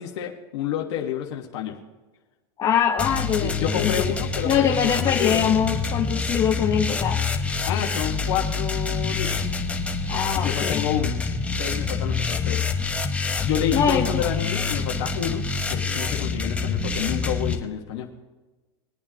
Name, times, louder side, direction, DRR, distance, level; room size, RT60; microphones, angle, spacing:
voice 1, 0.0-1.8 3.0-4.7 4.9-5.4 7.6-9.4 10.3-11.2 11.6-12.6 13.4-18.1, left 10 dB, 70° left, 0 dB, 1.5 m, -29 dB
voice 2, 2.6-4.1 4.4-7.2 10.1-10.8 13.7-14.2, left 8 dB, 30° left, -1 dB, 1.2 m, -23 dB
sound 1, 3.0-17.6, left 4 dB, 10° left, 1.1 m, -26 dB
22.0 x 8.6 x 2.9 m, 1.2 s
supercardioid pair, 140°, 15 cm